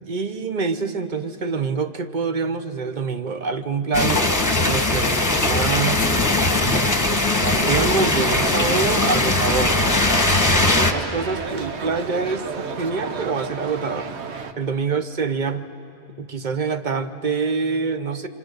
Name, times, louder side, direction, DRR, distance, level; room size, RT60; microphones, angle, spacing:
voice 1, 0.0-4.3 4.7-6.0 6.5-9.8 10.4-12.4 12.8-14.2 14.6-15.7 16.2-18.3, right 4 dB, 45° right, 9 dB, 0.9 m, -26 dB
sound 1, 3.9-10.9, left 2 dB, 15° left, 1.1 m, -20 dB
sound 2, 7.5-14.5, right 5 dB, 85° right, 1.2 m, -32 dB
27.5 x 25.0 x 6.5 m, 2.8 s
omnidirectional pair, 1.1 m